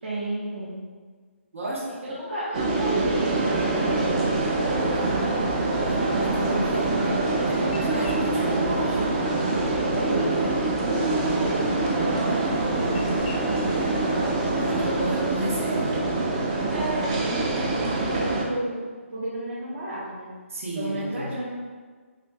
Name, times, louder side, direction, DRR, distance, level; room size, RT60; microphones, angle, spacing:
voice 1, 0.0-0.8 2.2-5.3 7.8-8.2 8.6-8.9 9.4-10.4 10.9-15.3 16.7-18.8 19.1-20.3 20.7-21.5, right 1 dB, 55° right, -8 dB, 0.8 m, -33 dB
voice 2, 1.5-2.0 6.1-9.0 14.5-16.1 20.5-21.3, right 1 dB, 75° right, -4 dB, 1.1 m, -32 dB
sound 1, 2.5-18.4, right 2 dB, 25° right, 0.4 m, -25 dB
sound 2, 4.7-15.4, left 2 dB, 40° left, 0.4 m, -40 dB
4.9 x 2.7 x 2.2 m, 1.5 s
hypercardioid pair, 165°, 7 cm